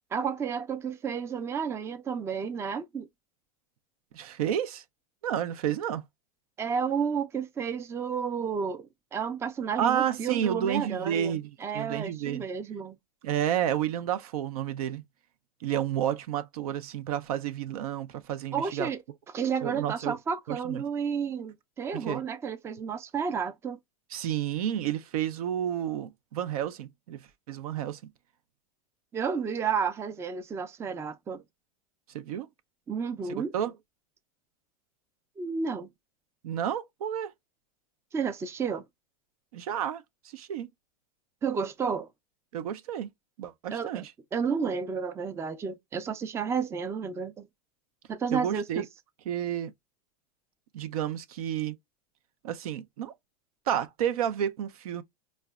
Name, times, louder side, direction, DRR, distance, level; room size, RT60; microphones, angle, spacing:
voice 1, 0.1-3.1 6.6-13.0 18.5-19.0 19.3-23.8 29.1-31.4 32.9-33.5 35.4-35.9 38.1-38.9 41.4-42.1 43.7-44.0 44.3-47.5 48.1-48.8, right 6 dB, 15° right, 0.3 m, -31 dB
voice 2, 4.1-4.8 5.2-6.0 9.8-12.5 13.2-15.0 15.6-18.9 19.6-20.2 20.5-20.8 21.9-22.2 24.1-28.0 32.1-32.5 33.5-33.7 36.4-37.3 39.5-40.0 40.3-40.7 42.5-43.1 43.4-44.1 48.3-48.9 49.3-49.7 50.7-51.8 52.4-53.1 53.7-55.0, right 10 dB, 80° right, 0.5 m, -31 dB
4.7 x 2.1 x 2.3 m
hypercardioid pair, 115°, 19 cm